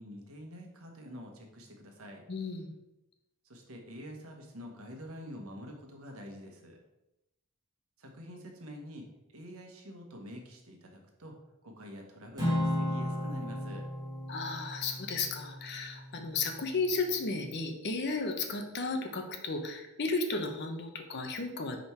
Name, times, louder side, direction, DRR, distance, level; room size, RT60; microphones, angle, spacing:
voice 1, 0.0-2.2 3.4-6.8 8.0-9.0 9.3-11.3 11.6-13.8, equal, 70° right, 2 dB, 1.3 m, -47 dB
voice 2, 2.3-2.7 14.3-21.8, left 3 dB, 50° left, 5 dB, 0.9 m, -34 dB
Acoustic guitar / Strum, 12.4-16.8, left 1 dB, 20° right, 2.3 m, -35 dB
5.3 x 5.1 x 4.6 m, 0.91 s
head